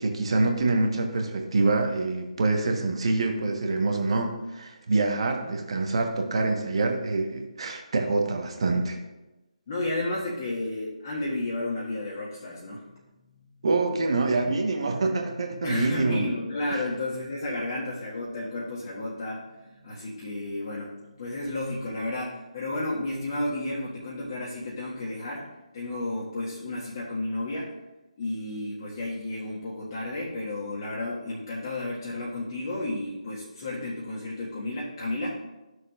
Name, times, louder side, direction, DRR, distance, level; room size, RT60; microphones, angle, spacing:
voice 1, 0.0-9.0 13.6-16.3 16.7-16.8, right 3 dB, 50° right, 3 dB, 1.3 m, -26 dB
voice 2, 9.7-12.8 15.6-25.5 25.7-27.7 28.2-35.4, left 2 dB, 40° left, -7 dB, 1.8 m, -32 dB
13.5 x 6.4 x 2.5 m, 1.1 s
figure-of-eight pair, 145°, 4 cm